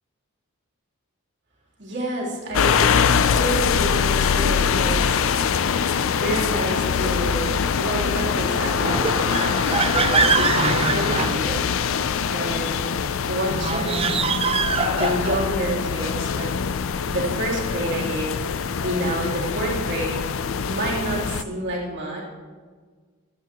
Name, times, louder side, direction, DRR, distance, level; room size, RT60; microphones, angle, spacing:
voice 1, 1.8-2.9 3.3-5.2 6.1-11.6 12.3-12.7 13.3-14.0 14.8-16.5 17.0-20.4 20.7-22.2, right 1 dB, 55° right, -4 dB, 3.2 m, -29 dB
sound 1, 2.5-21.4, left 6 dB, 60° left, 0.4 m, -23 dB
sound 2, 8.8-11.9 13.5-15.5, right 5 dB, 25° right, 0.4 m, -24 dB
16.0 x 11.5 x 3.0 m, 1.5 s
head